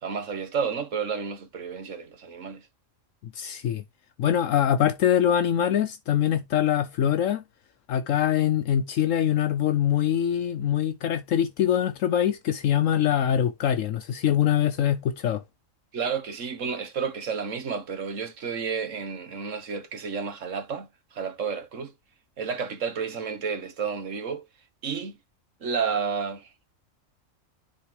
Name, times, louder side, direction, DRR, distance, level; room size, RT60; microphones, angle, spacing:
voice 1, 0.0-2.7 15.9-21.9 22.4-24.4 24.8-25.1 25.6-26.7, right 6 dB, 65° right, 1.6 m, -31 dB
voice 2, 3.4-3.8 4.2-7.4 7.9-15.4, left 10 dB, 75° left, 1.0 m, -23 dB
10.5 x 4.2 x 3.1 m
omnidirectional pair, 1.4 m